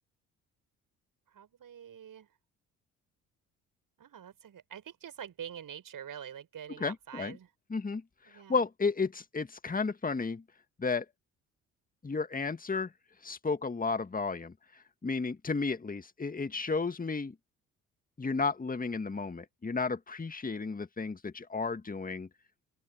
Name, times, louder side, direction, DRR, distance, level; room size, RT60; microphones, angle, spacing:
voice 1, 1.3-2.3 4.0-7.5 8.2-8.6, right 9 dB, 50° right, 7.8 m, -46 dB
voice 2, 6.8-7.4 7.7-8.0 8.3-10.4 10.8-11.1 12.0-12.9 13.2-14.5 15.0-17.4 18.2-22.3, left 4 dB, 20° left, 1.9 m, -33 dB
figure-of-eight pair, 45°, 42 cm